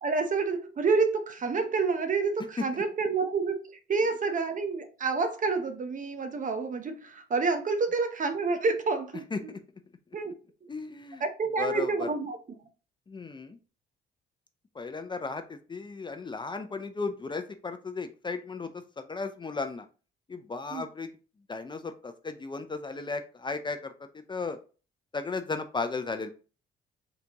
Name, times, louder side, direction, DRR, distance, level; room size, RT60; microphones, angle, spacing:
voice 1, 0.0-9.5 10.1-10.3 10.6-10.7 11.2-12.4 20.7-20.8, right 4 dB, 40° right, 0.8 m, -28 dB
voice 2, 9.3-9.6 10.7-11.2 11.6-12.1 13.1-13.6 14.7-19.9 20.3-21.1 21.5-24.6 25.1-26.3, left 4 dB, 25° left, 0.5 m, -35 dB
3.9 x 2.8 x 3.4 m
cardioid pair, 90°, 20 cm